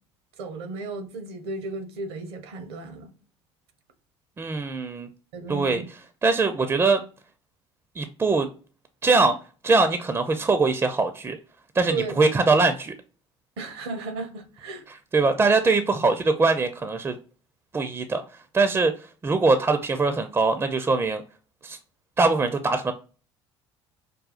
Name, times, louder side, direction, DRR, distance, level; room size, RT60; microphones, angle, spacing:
voice 1, 0.4-3.1 5.3-5.9 11.9-12.2 13.6-14.8, right 3 dB, 70° right, 0.7 m, -34 dB
voice 2, 4.4-5.1 5.5-5.8 6.2-7.0 8.0-8.5 9.0-9.4 9.6-11.4 11.7-12.9 15.1-17.2 17.7-18.2 18.5-21.2 21.6-21.8 22.2-22.9, right 3 dB, 20° right, 0.4 m, -22 dB
4.8 x 2.3 x 2.4 m
figure-of-eight pair, 60°, 15 cm